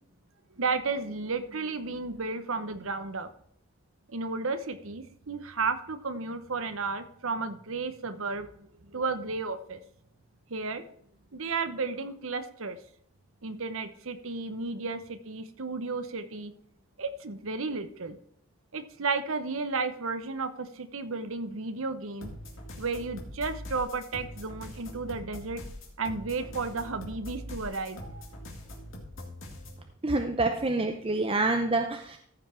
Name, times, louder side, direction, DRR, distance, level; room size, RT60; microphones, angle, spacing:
voice 1, 0.6-3.3 4.1-9.8 10.5-10.8 11.3-12.8 13.4-16.5 17.0-18.2 18.7-22.3 22.8-25.6 26.0-28.2, right 4 dB, 70° right, 10 dB, 1.0 m, -33 dB
sound 1, 22.2-29.8, left 1 dB, 60° left, 2.3 m, -43 dB
voice 2, 30.0-32.2, right 2 dB, 25° right, 5 dB, 0.6 m, -27 dB
14.5 x 5.6 x 4.4 m, 0.67 s
head